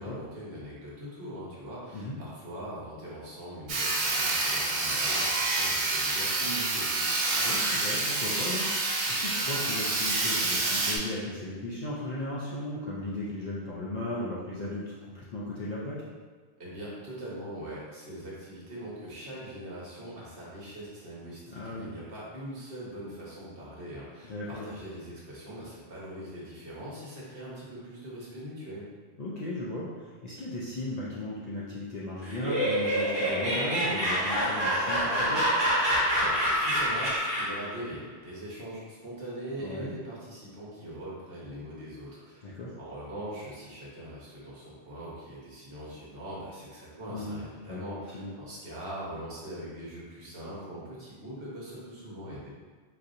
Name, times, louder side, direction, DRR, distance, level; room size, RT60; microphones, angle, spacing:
voice 1, 0.0-7.2 16.6-28.9 36.2-42.5 42.8-52.5, right 1 dB, 60° right, -7 dB, 1.2 m, -41 dB
Sawing, 3.7-11.0, right 2 dB, 80° right, 0.9 m, -28 dB
voice 2, 7.4-16.0 21.5-21.9 24.3-24.7 29.2-35.5 39.6-39.9 42.4-42.7 47.1-47.4 47.6-47.9 48.1-48.3, left 1 dB, 55° left, -7 dB, 0.5 m, -36 dB
Laughter, 32.2-37.7, equal, 25° right, 0.8 m, -27 dB
4.1 x 2.7 x 2.5 m, 1.5 s
omnidirectional pair, 1.1 m